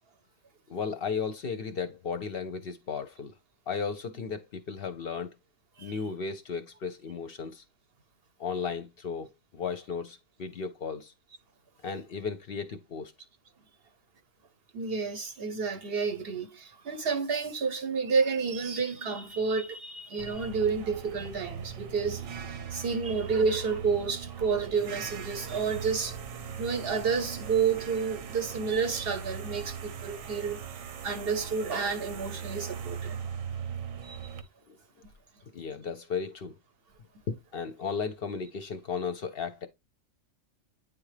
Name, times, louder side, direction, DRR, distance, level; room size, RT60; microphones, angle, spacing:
voice 1, 0.7-3.3 3.7-5.3 5.8-7.6 8.4-11.1 11.8-13.1 34.7-34.8 35.5-36.5 37.3-39.7, left 5 dB, 55° left, 0.7 m, -35 dB
voice 2, 14.7-22.2 22.5-26.2 26.6-33.3 34.0-34.3, right 5 dB, 55° right, 0.8 m, -30 dB
sound 1, 20.2-34.4, right 7 dB, 90° right, 1.2 m, -40 dB
9.1 x 3.7 x 3.2 m
omnidirectional pair, 1.3 m